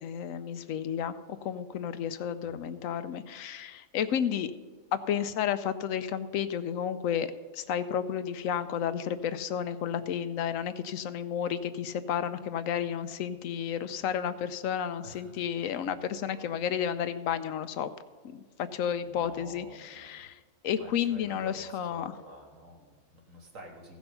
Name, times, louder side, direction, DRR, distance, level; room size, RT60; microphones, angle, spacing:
voice 1, 0.0-4.5 4.9-17.9 18.2-20.4 20.6-22.1, left 8 dB, 80° left, 12 dB, 1.0 m, -32 dB
voice 2, 15.0-15.4 15.8-15.9 16.3-16.5 19.0-20.3 20.8-24.0, equal, 75° right, 0 dB, 2.1 m, -50 dB
15.5 x 6.1 x 5.6 m, 1.4 s
omnidirectional pair, 1.4 m